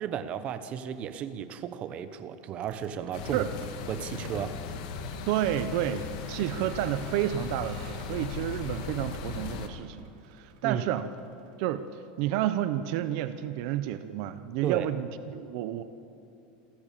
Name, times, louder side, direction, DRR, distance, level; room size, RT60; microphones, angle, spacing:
voice 1, 0.0-3.4 3.9-4.6 10.6-10.8 14.6-14.9, right 9 dB, 30° right, 11 dB, 1.0 m, -34 dB
Vehicle, 2.5-11.9, right 7 dB, 85° right, 2.3 m, -52 dB
sound 1, 3.1-9.7, left 6 dB, 60° left, 1.9 m, -37 dB
voice 2, 5.3-10.1 10.3-11.1 11.6-15.8, right 12 dB, 50° right, 12 dB, 0.8 m, -30 dB
27.5 x 13.5 x 7.5 m, 2.7 s
supercardioid pair, 170°, 4 cm